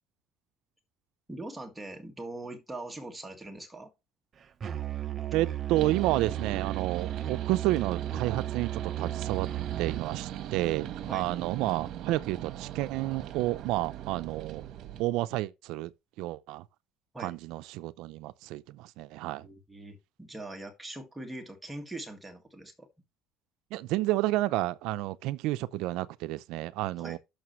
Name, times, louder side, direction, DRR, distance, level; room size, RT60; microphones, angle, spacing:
voice 1, 1.3-3.9 11.1-11.3 17.1-17.4 19.4-22.9 27.0-27.2, right 2 dB, 5° right, 1.8 m, -42 dB
Musical instrument, 4.6-10.1, right 11 dB, 30° right, 0.7 m, -34 dB
voice 2, 5.3-9.5 9.8-14.7 15.0-15.9 16.2-16.6 17.2-19.5 23.7-27.2, right 17 dB, 75° right, 0.5 m, -30 dB
sound 1, 5.7-15.0, right 11 dB, 55° right, 1.2 m, -40 dB
11.0 x 6.6 x 3.1 m
cardioid pair, 155°, 0 cm